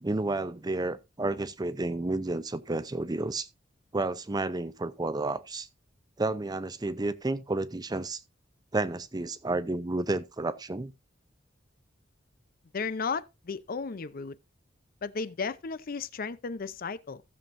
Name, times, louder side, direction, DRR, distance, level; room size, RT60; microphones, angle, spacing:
voice 1, 0.0-3.5 3.9-5.7 6.2-8.2 8.7-10.9, right 2 dB, 20° right, 0.6 m, -31 dB
voice 2, 12.7-14.4 15.0-17.2, left 5 dB, 50° left, 0.5 m, -34 dB
15.5 x 7.3 x 2.6 m
head